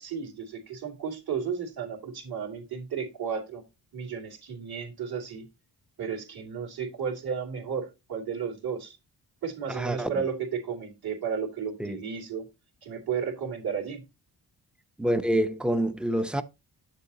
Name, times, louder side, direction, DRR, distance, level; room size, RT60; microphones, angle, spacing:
voice 1, 0.0-3.6 3.9-5.4 6.0-9.0 9.4-12.4 12.8-14.0, right 6 dB, 60° right, 2.7 m, -33 dB
voice 2, 9.7-10.1 11.8-12.0 15.0-16.4, right 1 dB, ahead, 0.6 m, -26 dB
7.2 x 6.9 x 2.8 m
cardioid pair, 70°, 41 cm